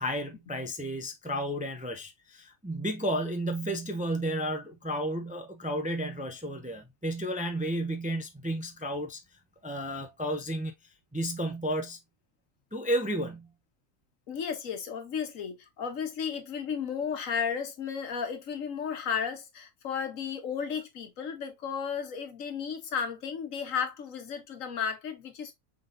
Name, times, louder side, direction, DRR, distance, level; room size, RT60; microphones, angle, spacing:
voice 1, 0.0-9.2 9.6-10.7 11.1-12.0 12.7-13.5, right 1 dB, 10° right, 0.5 m, -32 dB
voice 2, 14.3-25.5, left 7 dB, 80° left, 1.4 m, -34 dB
5.7 x 3.6 x 2.5 m
omnidirectional pair, 1.4 m